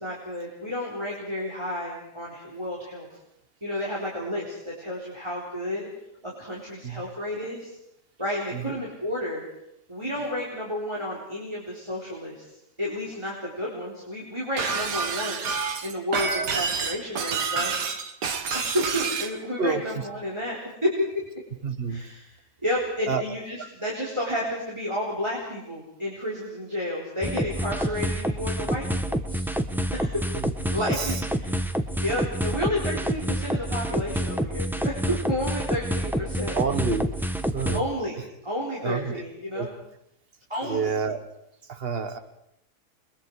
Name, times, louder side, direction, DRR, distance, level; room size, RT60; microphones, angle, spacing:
voice 1, 0.0-3.1 3.6-5.9 6.2-7.7 8.2-9.4 9.9-12.5 12.8-15.4 15.8-17.8 18.5-21.1 21.9-22.2 22.6-29.5 29.9-30.3 30.7-31.7 32.0-36.6 37.7-38.2 38.4-39.7 40.5-40.9, left 1 dB, 15° right, -4 dB, 4.3 m, -31 dB
voice 2, 8.5-8.8 10.0-10.1 19.6-19.8 21.6-22.0 23.1-23.2 23.6-23.7 30.3-30.5 30.9-31.3 36.0-36.1 36.5-37.0 37.5-37.8 38.8-39.1 39.5-39.7 40.6-41.2 41.6-42.2, right 5 dB, 40° right, 9 dB, 1.6 m, -29 dB
Shatter, 14.6-19.3, right 5 dB, 85° right, 2.0 m, -28 dB
sound 1, 27.2-37.8, equal, ahead, 0.9 m, -28 dB
29.0 x 22.5 x 4.8 m, 0.78 s
omnidirectional pair, 1.7 m